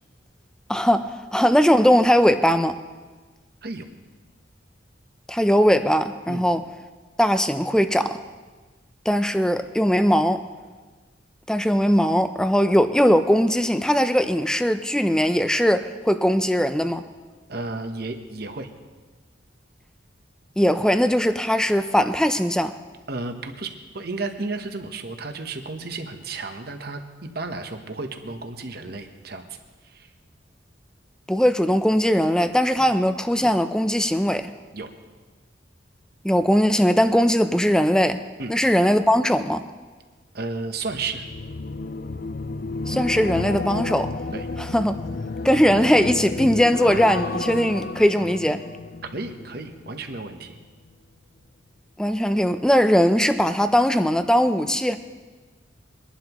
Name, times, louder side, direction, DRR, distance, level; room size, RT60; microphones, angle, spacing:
voice 1, 0.7-2.8 5.3-6.6 7.2-8.2 9.1-10.4 11.5-17.0 20.6-22.7 31.3-34.5 36.2-38.2 38.5-39.6 42.9-44.1 44.7-45.0 45.4-48.6 52.0-55.0, equal, 5° left, 9 dB, 0.5 m, -20 dB
voice 2, 17.5-18.7 23.1-29.6 29.8-30.1 34.7-34.9 38.4-38.5 40.3-41.2 44.3-44.5 49.1-50.6, right 3 dB, 55° right, 6 dB, 1.1 m, -33 dB
sound 1, 40.8-50.2 50.6-50.9, left 3 dB, 55° left, 0.4 m, -32 dB
23.5 x 11.5 x 3.0 m, 1.3 s
head